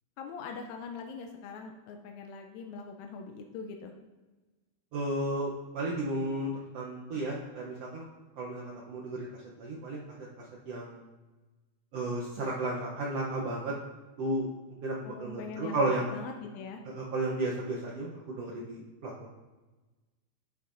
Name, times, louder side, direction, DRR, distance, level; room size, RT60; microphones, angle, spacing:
voice 1, 0.2-3.9 15.0-16.8, left 4 dB, 85° left, 3 dB, 1.6 m, -42 dB
voice 2, 4.9-8.0 8.4-10.0 10.6-11.0 11.9-13.7 14.2-14.5 14.8-16.1 16.9-19.3, right 2 dB, 90° right, -3 dB, 1.3 m, -33 dB
9.9 x 8.1 x 2.6 m, 1.2 s
omnidirectional pair, 3.9 m